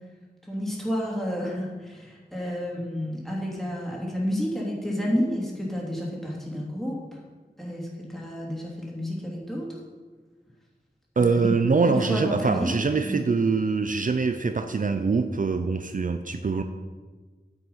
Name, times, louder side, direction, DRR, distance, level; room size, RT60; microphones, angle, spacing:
voice 1, 0.4-7.0 7.6-9.8 11.2-11.5 11.9-12.7 13.0-13.2, equal, ahead, -4 dB, 2.8 m, -30 dB
voice 2, 11.2-16.6, right 4 dB, 50° right, 8 dB, 0.5 m, -24 dB
9.0 x 7.7 x 5.6 m, 1.4 s
wide cardioid pair, 75°, 17 cm